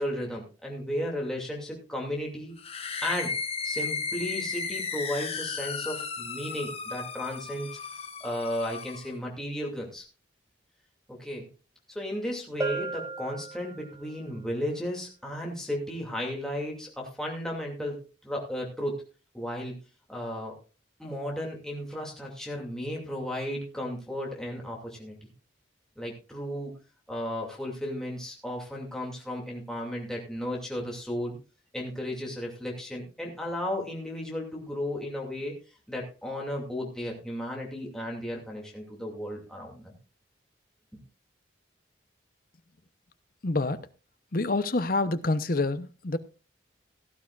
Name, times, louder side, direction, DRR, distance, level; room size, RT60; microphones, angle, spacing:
voice 1, 0.0-2.5 3.0-3.3 3.6-7.8 8.2-10.0 11.1-11.5 11.9-19.0 19.3-19.8 20.1-20.6 21.0-25.2 26.0-26.7 27.1-31.4 31.7-39.9 40.9-41.0, left 1 dB, 5° left, 2.5 m, -34 dB
sound 1, 2.6-9.1, left 5 dB, 30° left, 1.5 m, -35 dB
Bell, 12.6-14.2, right 3 dB, 15° right, 1.0 m, -35 dB
voice 2, 43.4-43.8 44.3-46.2, left 2 dB, 45° left, 0.8 m, -27 dB
17.5 x 12.0 x 2.5 m
head